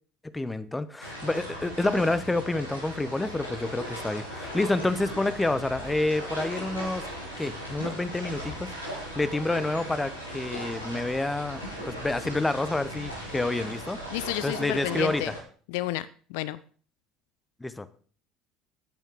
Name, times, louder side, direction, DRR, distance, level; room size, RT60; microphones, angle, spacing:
voice 1, 0.3-7.0 7.4-8.7 9.0-14.0 14.4-15.3 17.6-17.9, left 2 dB, 10° left, 14 dB, 1.0 m, -28 dB
sound 1, 1.0-15.4, equal, 90° left, 2.7 m, -38 dB
voice 2, 14.1-15.3 15.7-16.6, left 15 dB, 60° left, 17 dB, 0.5 m, -31 dB
10.5 x 9.1 x 4.8 m, 0.43 s
figure-of-eight pair, 60°, 0 cm